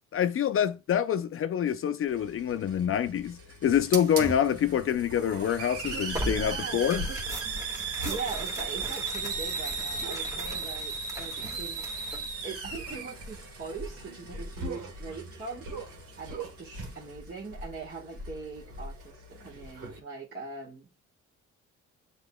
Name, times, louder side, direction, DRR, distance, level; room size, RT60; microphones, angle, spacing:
voice 1, 0.1-7.1, left 9 dB, 45° left, 0.5 m, -26 dB
Hiss, 2.1-20.0, right 4 dB, 50° right, 1.4 m, -38 dB
Human voice, 5.8-6.1 7.0-7.4 8.0-8.3 9.9-10.2 11.4-11.7 12.9-13.2 14.6-14.9 15.6-15.9 16.3-16.6, right 3 dB, 80° right, 1.5 m, -38 dB
Tearing, 6.1-12.3, right 1 dB, 10° right, 1.6 m, -39 dB
voice 2, 6.2-7.1 8.1-11.8 12.4-15.7 16.2-20.9, right 4 dB, 35° right, 1.4 m, -41 dB
7.9 x 2.9 x 2.2 m
cardioid pair, 90°, 30 cm